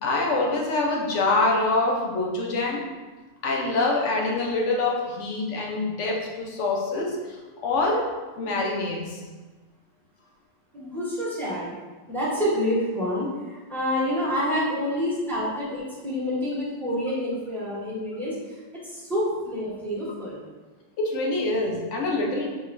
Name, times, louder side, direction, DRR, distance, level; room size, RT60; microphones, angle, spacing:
voice 1, 0.0-2.8 3.4-7.4 7.6-8.0 8.4-9.2 21.0-22.5, left 2 dB, 85° left, -1 dB, 1.1 m, -25 dB
voice 2, 10.7-11.7 12.1-18.3 18.8-20.4, equal, ahead, -8 dB, 0.9 m, -27 dB
5.0 x 2.9 x 2.6 m, 1.3 s
omnidirectional pair, 1.2 m